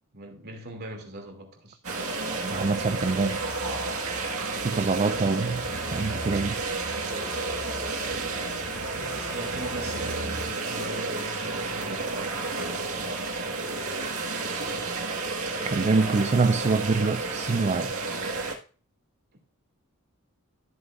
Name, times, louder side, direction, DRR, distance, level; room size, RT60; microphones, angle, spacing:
voice 1, 0.1-1.8 5.7-6.0 8.7-12.8, right 1 dB, 50° right, 2.7 m, -41 dB
sound 1, 1.8-18.5, right 3 dB, 80° right, 1.9 m, -31 dB
voice 2, 2.4-3.6 4.6-6.6 15.6-18.2, right 4 dB, 35° right, 0.4 m, -25 dB
sound 2, 2.5-10.5, right 1 dB, 80° left, 4.3 m, -42 dB
13.5 x 7.6 x 2.5 m
head